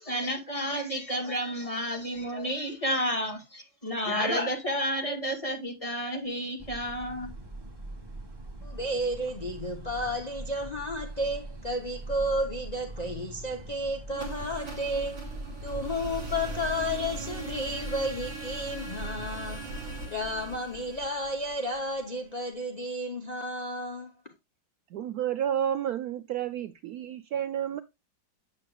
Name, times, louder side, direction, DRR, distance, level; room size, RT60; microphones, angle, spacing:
voice 1, 0.0-7.3, equal, 20° left, 1.6 m, -31 dB
sound 1, 6.6-19.8, right 2 dB, 15° right, 0.9 m, -42 dB
voice 2, 8.6-15.2 15.6-19.6 20.1-24.1, equal, 55° left, 0.4 m, -32 dB
sound 2, 14.1-22.0, right 2 dB, 40° right, 3.3 m, -40 dB
voice 3, 24.9-27.8, right 10 dB, 70° right, 0.9 m, -31 dB
7.7 x 7.4 x 2.3 m
omnidirectional pair, 2.0 m